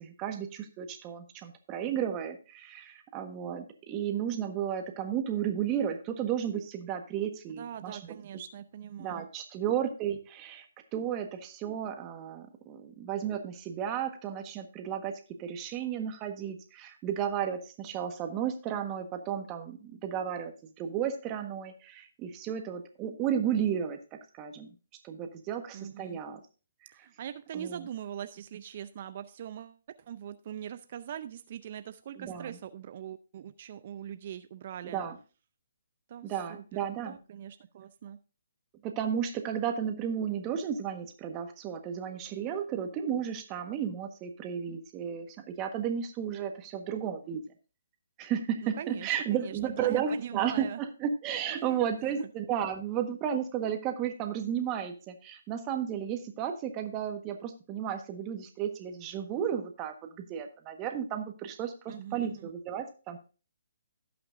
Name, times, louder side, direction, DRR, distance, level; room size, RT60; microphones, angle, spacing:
voice 1, 0.0-8.0 9.0-10.7 10.9-20.5 20.8-24.0 24.3-24.7 25.0-26.4 27.0-27.1 27.5-27.8 32.1-32.6 34.8-35.2 36.2-37.2 38.8-47.4 48.2-63.2, right 9 dB, 25° right, 6 dB, 1.4 m, -33 dB
voice 2, 7.6-9.3 25.7-26.2 27.0-29.8 30.1-35.0 36.1-36.6 37.0-38.2 48.6-49.1 49.4-50.8 51.5-52.3 61.9-62.5, right 10 dB, 45° right, 12 dB, 0.5 m, -42 dB
17.0 x 5.9 x 2.6 m, 0.35 s
hypercardioid pair, 145°, 0 cm